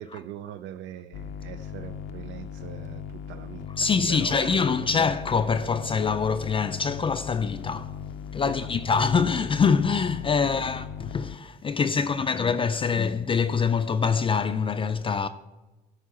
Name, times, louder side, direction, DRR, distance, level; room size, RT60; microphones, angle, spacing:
voice 1, 0.0-4.9 8.4-8.7 10.4-10.7 11.8-12.5 12.9-13.1, right 11 dB, 80° right, 0.5 m, -42 dB
sound 1, 1.1-11.4, left 8 dB, 75° left, 0.6 m, -38 dB
voice 2, 3.8-7.9 8.3-15.3, left 5 dB, 30° left, 0.4 m, -25 dB
12.0 x 4.6 x 7.4 m
cardioid pair, 120°, 19 cm